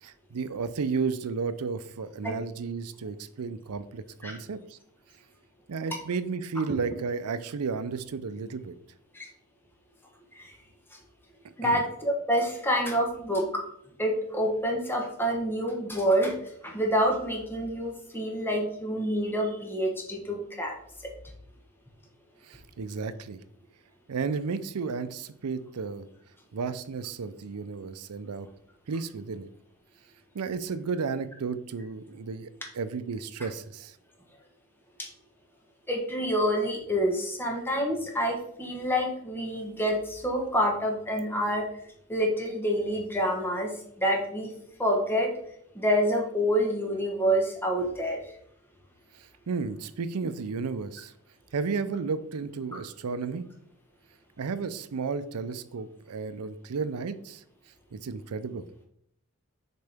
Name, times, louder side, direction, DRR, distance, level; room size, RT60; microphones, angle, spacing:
voice 1, 0.0-4.8 5.7-8.7 11.6-11.8 22.4-23.4 24.1-26.1 26.5-28.5 28.9-29.5 30.3-32.5 32.7-34.0 49.1-51.1 51.5-53.4 54.4-57.4 57.9-58.6, right 5 dB, 85° right, 12 dB, 0.5 m, -33 dB
voice 2, 11.6-13.6 14.0-16.3 16.6-20.7 35.0-35.1 35.9-41.6 42.1-44.5 44.8-45.3 45.7-48.2, equal, 10° left, 0 dB, 1.1 m, -27 dB
6.6 x 4.5 x 3.5 m, 0.69 s
head